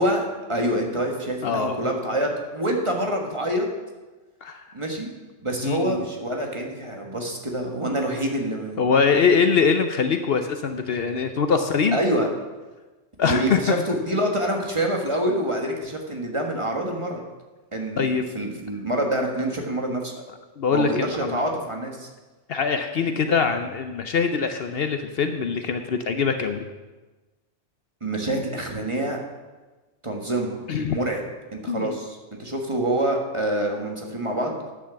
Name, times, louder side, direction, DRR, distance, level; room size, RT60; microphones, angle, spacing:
voice 1, 0.0-3.7 4.7-5.1 5.4-8.8 11.9-12.3 13.2-17.2 17.7-18.1 18.3-20.1 20.7-22.1 28.0-29.2 30.0-30.6 30.9-31.2 31.5-34.6, right 1 dB, 25° right, 1 dB, 1.4 m, -26 dB
voice 2, 1.4-1.8 4.4-4.7 5.6-6.0 8.8-12.0 13.2-13.8 18.0-18.3 20.6-21.4 22.5-26.7 30.7-31.1 31.7-31.9, left 5 dB, 60° left, 7 dB, 0.8 m, -23 dB
10.0 x 6.1 x 7.0 m, 1.2 s
omnidirectional pair, 1.2 m